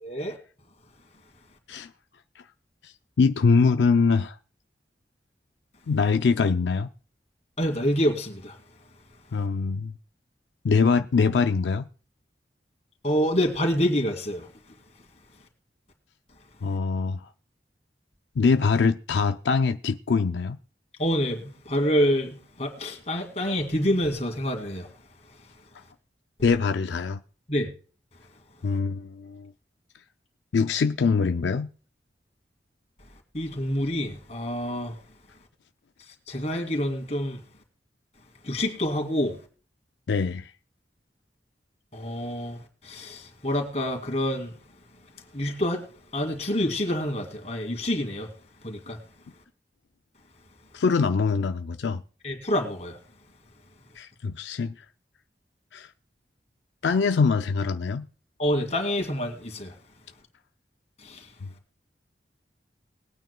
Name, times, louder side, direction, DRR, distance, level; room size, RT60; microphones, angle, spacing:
voice 1, 0.0-0.4 7.6-8.6 13.0-14.5 21.0-24.9 27.5-27.7 33.3-35.0 36.3-37.4 38.4-39.4 41.9-44.5 45.3-45.9 46.1-48.3 48.6-49.0 52.2-53.0 58.4-59.7 61.0-61.3, equal, 40° left, 2.3 m, -27 dB
voice 2, 2.8-4.4 5.9-6.9 9.3-9.9 10.6-11.9 16.6-17.3 18.4-20.6 26.4-27.2 28.6-29.5 30.5-31.7 40.1-40.5 50.7-52.0 54.0-54.8 55.7-55.9 56.8-58.1 61.4-61.5, left 5 dB, 90° left, 0.4 m, -23 dB
21.0 x 9.1 x 2.2 m
head